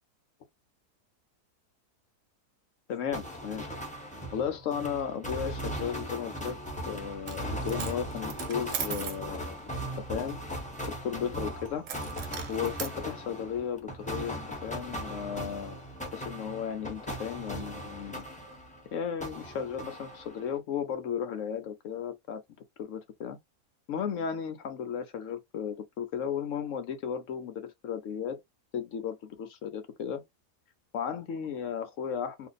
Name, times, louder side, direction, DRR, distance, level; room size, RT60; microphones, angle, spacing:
voice 1, 2.9-3.7 4.3-6.6 6.9-9.7 10.1-10.4 11.0-11.9 12.5-15.8 16.1-18.3 18.9-22.4 22.8-23.4 23.9-28.4 28.7-30.2 30.9-32.5, left 8 dB, 65° left, 0.8 m, -35 dB
sound 1, 3.1-18.9 19.2-20.6, equal, 10° left, 0.5 m, -38 dB
Coin (dropping), 7.1-7.4 7.7-9.2 11.9-13.0, right 8 dB, 70° right, 1.0 m, -38 dB
2.6 x 2.5 x 3.8 m
omnidirectional pair, 1.7 m